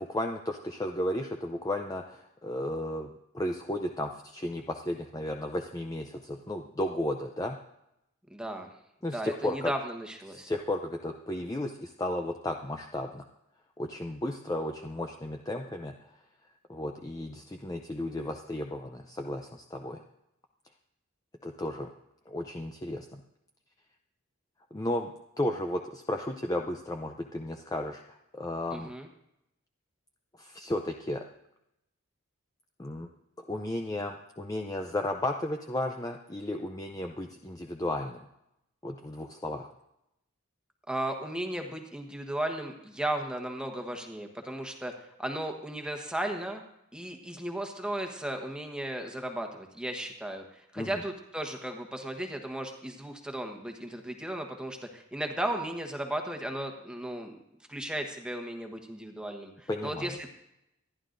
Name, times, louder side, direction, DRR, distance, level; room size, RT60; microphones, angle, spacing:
voice 1, 0.0-7.6 9.0-9.7 10.3-13.2 13.8-16.0 16.7-20.0 21.4-21.9 22.3-23.2 24.7-28.9 30.4-31.2 32.8-33.1 33.5-38.2 38.8-39.7 50.8-50.9 59.7-60.2, left 1 dB, 15° left, 3 dB, 0.5 m, -34 dB
voice 2, 8.3-8.7 9.1-10.5 28.7-29.1 40.9-46.6 46.9-57.4 57.7-60.3, right 1 dB, 5° right, 4 dB, 1.2 m, -35 dB
26.5 x 11.0 x 2.6 m, 0.85 s
head